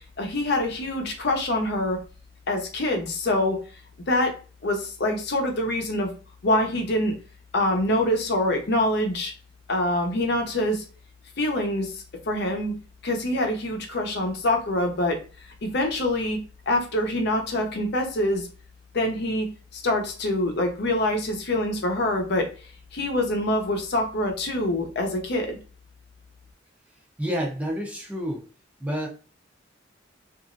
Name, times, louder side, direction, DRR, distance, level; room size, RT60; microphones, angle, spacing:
voice 1, 0.2-2.0 2.5-3.6 4.1-4.3 4.6-6.1 6.4-7.1 7.5-9.3 9.7-10.8 11.4-11.9 12.3-12.7 13.0-15.2 15.6-16.4 16.7-18.5 18.9-19.5 19.7-22.5 22.9-25.6, left 1 dB, 60° left, 2 dB, 0.7 m, -25 dB
voice 2, 27.2-28.4 28.8-29.1, equal, 5° right, -1 dB, 0.6 m, -29 dB
3.0 x 2.5 x 2.5 m, 0.35 s
head